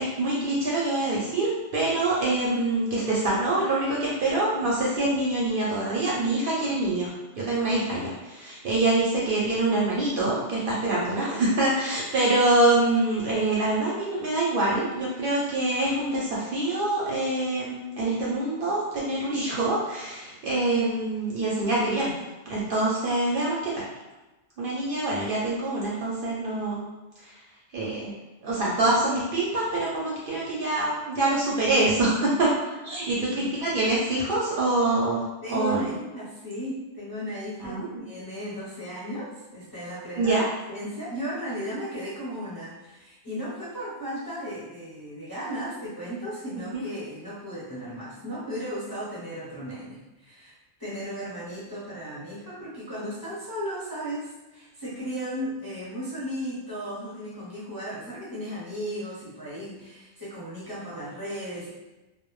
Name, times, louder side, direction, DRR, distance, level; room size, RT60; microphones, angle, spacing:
voice 1, 0.0-22.1 22.5-23.8 24.6-26.9 27.2-27.4 27.7-28.1 28.4-32.5 32.8-35.2 35.5-35.9 37.6-38.0 40.2-40.5 46.7-46.8, right 2 dB, 60° right, -5 dB, 0.6 m, -25 dB
voice 2, 35.4-50.5 50.8-61.7, equal, 25° left, -9 dB, 0.5 m, -35 dB
2.1 x 2.0 x 3.0 m, 1.1 s
omnidirectional pair, 1.2 m